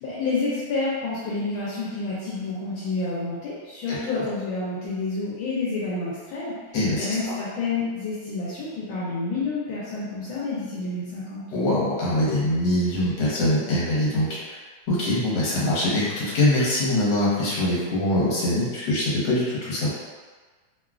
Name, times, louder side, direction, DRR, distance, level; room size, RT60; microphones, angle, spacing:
voice 1, 0.0-6.6 7.0-11.4, left 3 dB, 80° left, -7 dB, 1.4 m, -29 dB
voice 2, 6.7-7.1 11.5-14.6 14.9-19.9, left 1 dB, 65° left, -7 dB, 1.6 m, -23 dB
3.6 x 2.2 x 2.4 m, 1.4 s
omnidirectional pair, 2.3 m